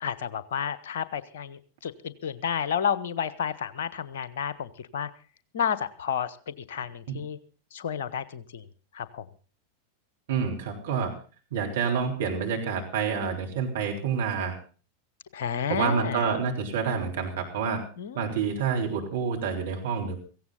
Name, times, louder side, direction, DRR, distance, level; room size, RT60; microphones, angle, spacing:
voice 1, 0.0-5.1 5.5-7.4 7.7-8.7 8.9-9.2 15.3-16.3 18.0-18.3, left 8 dB, 60° left, 16 dB, 1.0 m, -31 dB
voice 2, 10.3-11.1 11.5-14.5 15.7-17.8 18.1-20.2, right 6 dB, 60° right, 1 dB, 3.8 m, -28 dB
17.0 x 16.0 x 3.9 m, 0.37 s
figure-of-eight pair, 90°, 0 cm